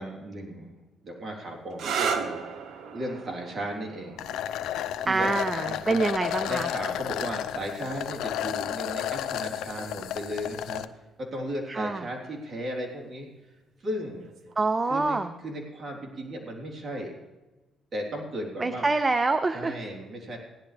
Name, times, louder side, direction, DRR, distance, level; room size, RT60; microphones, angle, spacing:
voice 1, 0.0-2.4 2.9-4.2 5.0-5.3 5.6-6.0 6.4-10.8 11.2-13.3 13.8-14.3 14.9-17.1 17.9-18.9 19.5-20.4, equal, 45° right, 0 dB, 3.7 m, -35 dB
sound 1, 1.7-9.2 10.2-10.7 14.2-14.5, right 6 dB, 70° right, 1.0 m, -37 dB
sound 2, 4.2-10.9, left 11 dB, 85° left, 0.5 m, -32 dB
voice 2, 5.1-6.7 11.7-12.1 14.6-15.3 18.6-19.8, right 3 dB, 25° right, 11 dB, 0.6 m, -26 dB
16.5 x 11.0 x 3.4 m, 1.1 s
cardioid pair, 90°, 0 cm